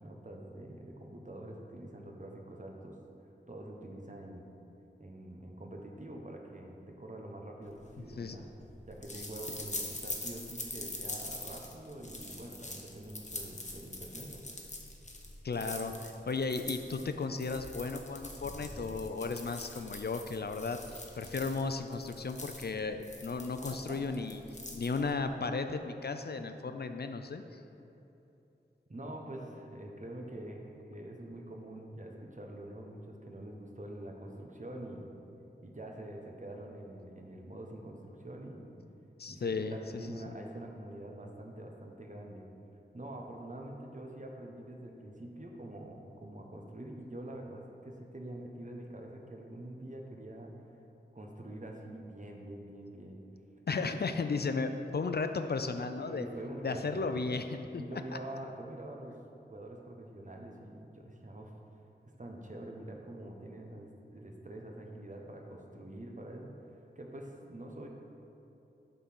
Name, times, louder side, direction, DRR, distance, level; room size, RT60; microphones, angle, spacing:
voice 1, 0.0-3.0 3.5-4.5 5.0-8.5 8.9-14.5 23.9-24.2 28.9-35.2 35.6-38.7 39.3-42.5 42.9-50.5 51.1-53.2 53.7-54.0 56.0-57.1 57.7-59.2 59.5-61.5 62.2-67.9, right 1 dB, 40° right, 1 dB, 1.1 m, -45 dB
sound 1, 7.8-25.3, left 2 dB, 40° left, 1.0 m, -44 dB
voice 2, 15.4-24.4 24.7-27.6 39.2-40.3 53.7-56.3 56.6-57.8, left 4 dB, 55° left, 8 dB, 0.4 m, -35 dB
8.1 x 4.0 x 6.0 m, 2.9 s
wide cardioid pair, 40°, 19 cm